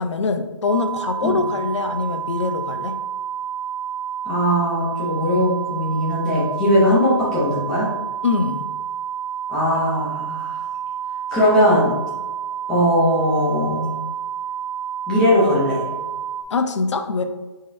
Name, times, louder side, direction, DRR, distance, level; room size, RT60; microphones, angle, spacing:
voice 1, 0.0-3.0 8.2-8.6 16.5-17.2, left 4 dB, 70° left, 7 dB, 0.5 m, -23 dB
sound 1, 0.6-16.4, right 9 dB, 75° right, 0.4 m, -29 dB
voice 2, 4.3-7.9 9.5-10.6 11.3-11.9 12.7-13.9 15.1-15.9, equal, 5° left, -8 dB, 0.4 m, -19 dB
4.1 x 3.9 x 2.5 m, 1.2 s
hypercardioid pair, 170°, 16 cm